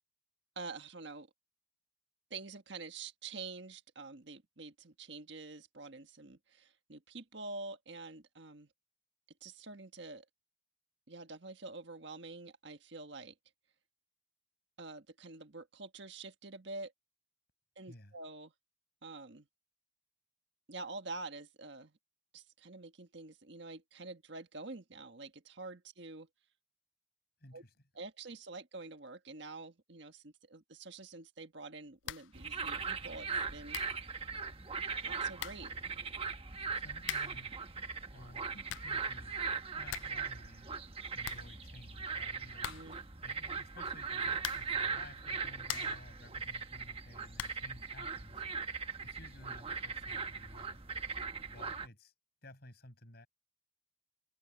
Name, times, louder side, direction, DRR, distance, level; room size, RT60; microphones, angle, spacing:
voice 1, 0.5-1.3 2.3-8.7 9.4-10.2 11.1-13.3 14.8-16.9 17.8-18.5 19.0-19.5 20.7-21.9 22.3-26.3 27.5-27.6 27.9-33.8 35.0-35.9 42.6-43.0, right 3 dB, 65° right, 1.6 m, -47 dB
voice 2, 27.4-27.7 36.7-37.5 38.1-39.5 39.8-40.7 41.1-42.7 43.2-48.4 49.0-50.8 51.5-52.1 52.4-53.3, left 1 dB, 55° left, 5.7 m, -55 dB
sound 1, 32.0-32.4 32.7-32.8 33.4-33.5 33.7-34.0 35.0-35.1 35.4-35.7 37.0-37.5 38.4-39.0 39.4-39.5 39.7-40.2 40.5-40.6 40.9-41.0 41.2-42.0 42.6-43.1 44.4-44.9 45.3-46.1 47.3-47.7, left 13 dB, 70° left, 0.3 m, -43 dB
sound 2, 32.3-51.9, right 5 dB, 30° right, 1.3 m, -39 dB
head